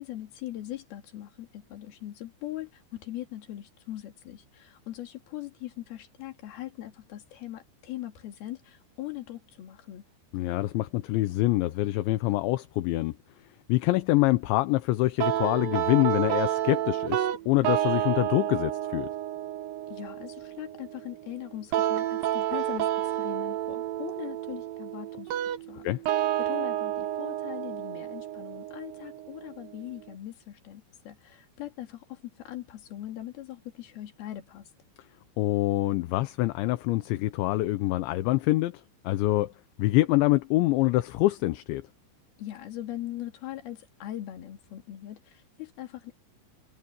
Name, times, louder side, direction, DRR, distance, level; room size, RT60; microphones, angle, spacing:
voice 1, 0.0-10.0 19.9-25.3 25.7-34.7 42.4-46.2, left 14 dB, 60° left, 4.0 m, -40 dB
voice 2, 10.3-13.1 13.7-19.1 25.8-26.0 35.4-39.5 39.8-41.8, left 18 dB, 80° left, 3.1 m, -25 dB
sound 1, 15.2-30.2, right 12 dB, 65° right, 2.5 m, -30 dB
omnidirectional pair, 5.4 m